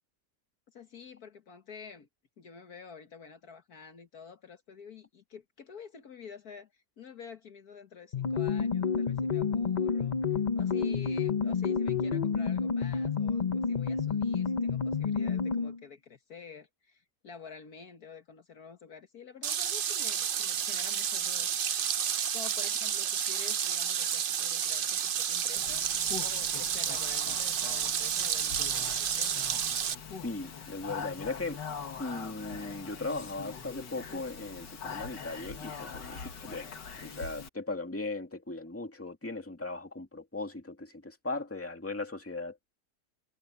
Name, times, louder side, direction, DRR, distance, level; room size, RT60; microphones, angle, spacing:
voice 1, 0.7-2.1 2.4-21.5 22.3-29.4, left 6 dB, 60° left, 1.8 m, -49 dB
sound 1, 8.1-15.8, left 6 dB, 45° left, 0.6 m, -29 dB
sound 2, 19.4-29.9, right 8 dB, 80° right, 0.4 m, -31 dB
Speech, 25.6-37.5, left 6 dB, 80° left, 2.4 m, -43 dB
voice 2, 30.2-31.6 32.0-36.7 37.0-42.6, left 2 dB, 10° left, 2.1 m, -38 dB
omnidirectional pair, 1.9 m